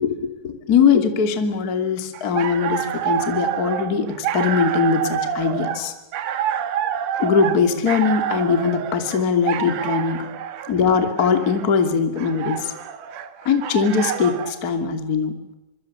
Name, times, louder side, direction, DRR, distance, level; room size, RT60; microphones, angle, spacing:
voice 1, 0.0-5.9 7.2-10.3 10.7-12.7 13.4-15.3, left 6 dB, 30° left, 7 dB, 1.7 m, -21 dB
sound 1, 2.1-14.6, right 9 dB, 65° right, 3.4 m, -27 dB
25.5 x 25.0 x 6.8 m, 0.98 s
omnidirectional pair, 5.9 m